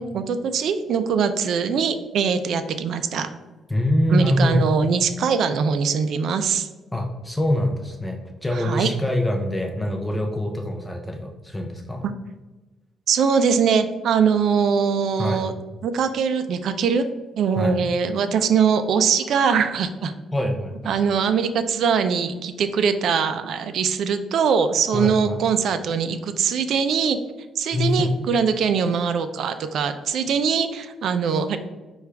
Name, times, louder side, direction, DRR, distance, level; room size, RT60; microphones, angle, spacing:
voice 1, 0.0-3.3 4.1-6.7 8.6-8.9 12.0-12.1 13.1-15.5 15.8-17.0 17.4-20.1 20.9-27.2 27.6-31.6, right 6 dB, 70° right, 10 dB, 0.3 m, -22 dB
voice 2, 3.7-4.7 6.9-12.0 15.2-15.5 17.6-17.9 20.3-21.2 24.9-25.4 27.7-28.3, left 1 dB, 10° left, 1 dB, 0.5 m, -24 dB
5.9 x 2.3 x 3.3 m, 1.1 s
cardioid pair, 90°, 0 cm